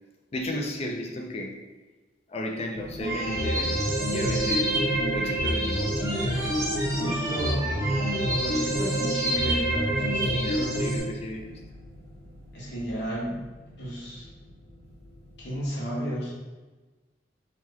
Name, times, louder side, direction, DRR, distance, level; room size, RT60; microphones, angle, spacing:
voice 1, 0.3-1.6 2.3-3.8 4.1-6.6 10.2-11.6, left 1 dB, 35° left, 1 dB, 0.4 m, -34 dB
sound 1, 2.7-15.7, equal, 65° right, 0.7 m, -42 dB
sound 2, 3.0-11.0, right 1 dB, 15° right, 0.6 m, -26 dB
voice 2, 7.0-10.4 12.5-13.5 13.8-14.3 15.4-16.3, equal, 65° left, -5 dB, 0.9 m, -33 dB
2.9 x 2.2 x 3.4 m, 1.2 s
head